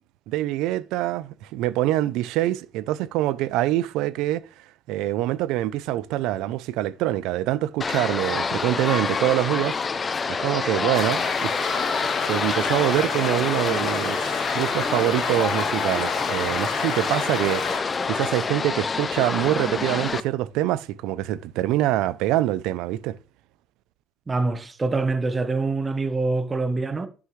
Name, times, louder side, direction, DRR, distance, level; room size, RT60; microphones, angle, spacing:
voice 1, 0.3-4.4 4.9-9.8 10.3-11.8 12.2-23.2, right 14 dB, 80° right, 0.5 m, -25 dB
sound 1, 7.8-20.2, left 4 dB, 25° left, 0.5 m, -27 dB
sound 2, 10.9-17.8, left 5 dB, 55° left, 2.3 m, -30 dB
voice 2, 24.3-27.1, right 3 dB, 20° right, 1.0 m, -25 dB
11.5 x 5.8 x 3.2 m
cardioid pair, 140°, 0 cm